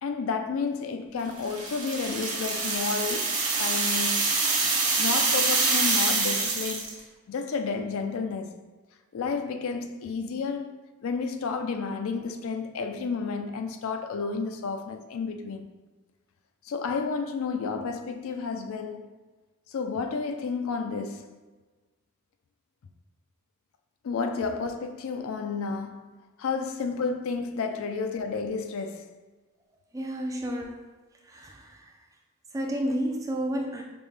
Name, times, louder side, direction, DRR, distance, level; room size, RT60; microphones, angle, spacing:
voice 1, 0.0-4.4 5.0-6.9 7.3-8.5 9.1-15.7 16.6-19.1 19.7-21.3 24.0-29.2, left 4 dB, 65° left, 0.3 m, -31 dB
sound 1, 1.4-7.0, right 3 dB, 80° right, 0.9 m, -26 dB
voice 2, 29.9-30.9 31.3-31.9 32.5-33.8, equal, 15° right, 0.3 m, -31 dB
5.1 x 2.1 x 3.1 m
head